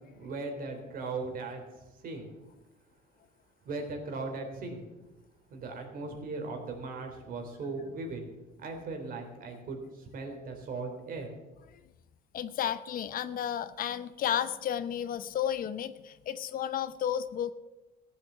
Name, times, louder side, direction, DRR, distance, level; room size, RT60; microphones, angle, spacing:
voice 1, 0.1-2.3 3.6-4.9 5.5-8.2 8.6-11.3, right 3 dB, 60° right, 3 dB, 3.5 m, -38 dB
voice 2, 12.3-17.5, left 9 dB, 55° left, 14 dB, 0.7 m, -32 dB
15.0 x 7.6 x 8.0 m, 1.1 s
cardioid pair, 110°, 17 cm